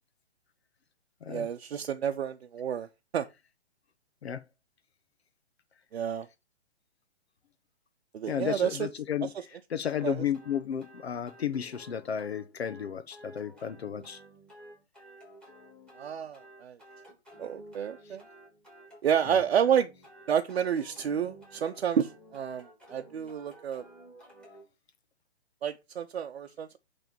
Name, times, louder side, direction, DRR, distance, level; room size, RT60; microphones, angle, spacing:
voice 1, 1.3-2.9 3.1-3.3 5.9-6.3 8.1-8.9 10.0-10.2 15.9-16.8 17.4-18.2 19.0-19.9 20.3-23.8 25.6-26.8, right 8 dB, 65° right, 0.8 m, -30 dB
voice 2, 8.3-9.3 9.7-14.2, left 9 dB, 70° left, 1.0 m, -33 dB
sound 1, 9.9-24.6, right 1 dB, 5° left, 2.9 m, -53 dB
10.5 x 3.5 x 5.2 m
hypercardioid pair, 135°, 33 cm